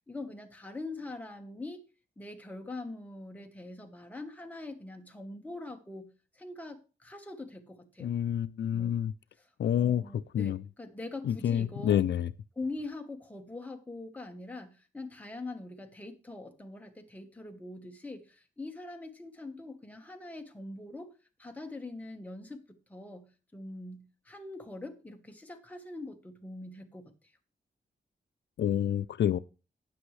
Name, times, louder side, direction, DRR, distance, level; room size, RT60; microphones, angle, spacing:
voice 1, 0.1-1.8 2.2-8.1 8.7-9.0 9.4-12.0 12.6-21.1 21.4-27.1, left 2 dB, 10° left, 1.2 m, -43 dB
voice 2, 8.0-9.1 9.6-10.6 11.2-12.3 28.6-29.4, left 10 dB, 80° left, 0.4 m, -28 dB
18.0 x 6.2 x 3.2 m
wide cardioid pair, 180°, 18 cm